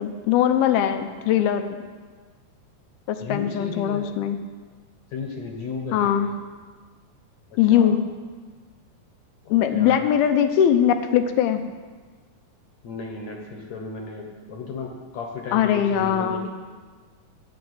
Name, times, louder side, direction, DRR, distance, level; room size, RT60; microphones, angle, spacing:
voice 1, 0.0-1.8 3.1-4.4 5.9-6.3 7.6-8.0 9.5-11.6 15.5-16.5, left 9 dB, 90° left, 8 dB, 2.8 m, -21 dB
voice 2, 3.2-4.1 5.1-6.4 7.5-7.9 9.5-10.1 12.8-16.5, left 4 dB, 60° left, 1 dB, 2.0 m, -35 dB
11.0 x 7.3 x 9.5 m, 1.5 s
omnidirectional pair, 4.3 m